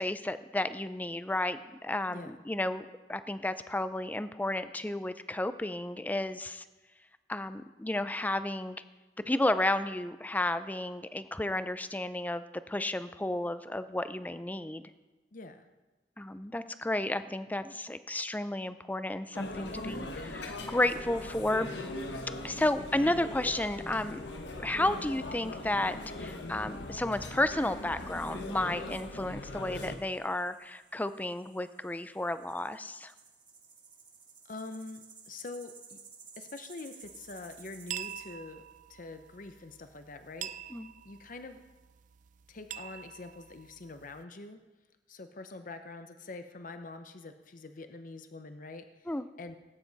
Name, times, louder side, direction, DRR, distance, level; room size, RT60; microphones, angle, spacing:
voice 1, 0.0-6.6 7.3-8.8 9.3-14.8 16.2-21.7 22.4-24.3 24.6-33.1 40.7-40.9 49.1-49.3, left 1 dB, 10° left, 12 dB, 0.4 m, -32 dB
voice 2, 2.1-2.4 15.3-15.7 22.5-22.7 34.5-36.0 36.4-38.6 38.9-40.5 41.0-41.6 42.5-44.6 45.1-49.1 49.4-49.6, left 3 dB, 50° left, 8 dB, 0.7 m, -45 dB
sound 1, 19.3-29.9, left 2 dB, 85° left, 1.3 m, -40 dB
sound 2, 19.3-38.2, right 5 dB, 30° right, 1.9 m, -58 dB
sound 3, 37.0-44.2, right 10 dB, 45° right, 0.4 m, -46 dB
18.0 x 9.4 x 4.0 m, 1.1 s
head